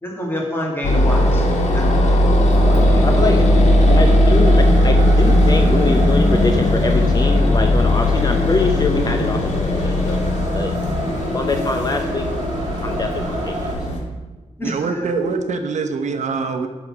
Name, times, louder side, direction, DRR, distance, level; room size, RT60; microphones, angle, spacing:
voice 1, 0.0-1.5 1.7-2.4 2.7-3.3 14.6-15.3, equal, 20° left, -1 dB, 2.2 m, -28 dB
sound 1, 0.8-14.0, left 1 dB, 75° left, 2.2 m, -17 dB
Wind, 2.5-13.7, right 2 dB, 40° right, 1.8 m, -31 dB
voice 2, 3.0-10.3 10.5-10.7 11.3-12.3 12.8-13.7, left 3 dB, 35° left, 4 dB, 0.8 m, -24 dB
voice 3, 14.6-16.7, right 4 dB, 75° right, 6 dB, 0.8 m, -24 dB
12.0 x 4.2 x 6.1 m, 1.3 s
wide cardioid pair, 115°, 12 cm